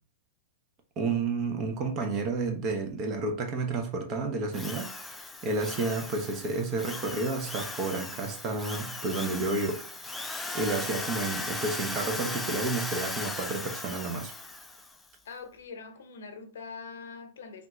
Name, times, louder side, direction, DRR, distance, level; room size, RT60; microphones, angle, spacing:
voice 1, 1.0-9.9 10.5-14.3, right 3 dB, 35° right, 0.8 m, -31 dB
Drill, 4.5-14.9, left 2 dB, 10° left, 0.4 m, -37 dB
voice 2, 15.2-17.7, left 5 dB, 80° left, 0.7 m, -43 dB
3.6 x 2.4 x 3.0 m
hypercardioid pair, 145°, 0 cm